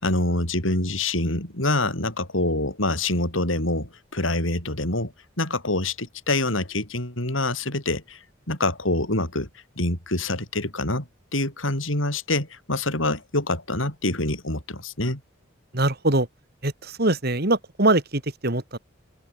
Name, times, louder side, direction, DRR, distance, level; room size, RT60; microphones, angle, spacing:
voice 1, 0.0-5.1 5.4-8.2 8.5-9.5 9.8-15.2, left 2 dB, 80° left, 7.2 m, -26 dB
voice 2, 15.7-16.3 16.6-16.7 17.0-18.8, right 2 dB, 50° right, 3.0 m, -22 dB
open air
head